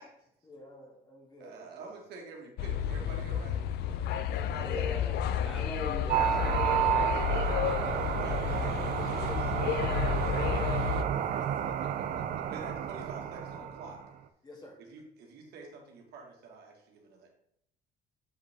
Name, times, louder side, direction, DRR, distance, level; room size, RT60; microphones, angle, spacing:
voice 1, 0.4-1.9 4.3-4.5 7.2-8.4 8.9-12.4 14.4-14.8, left 1 dB, 25° left, 0 dB, 2.1 m, -49 dB
voice 2, 1.4-3.6 4.4-5.4 6.6-7.7 8.2-8.8 9.2-9.5 12.5-14.0 14.8-17.3, right 4 dB, 75° right, 1 dB, 1.8 m, -47 dB
sound 1, 2.6-11.0, left 9 dB, 75° left, 0.5 m, -31 dB
voice 3, 4.4-5.1 5.4-7.1, right 1 dB, ahead, -1 dB, 1.2 m, -42 dB
sound 2, 6.1-14.1, right 9 dB, 60° right, 0.6 m, -31 dB
7.5 x 5.0 x 3.6 m, 0.74 s
cardioid pair, 110°, 17 cm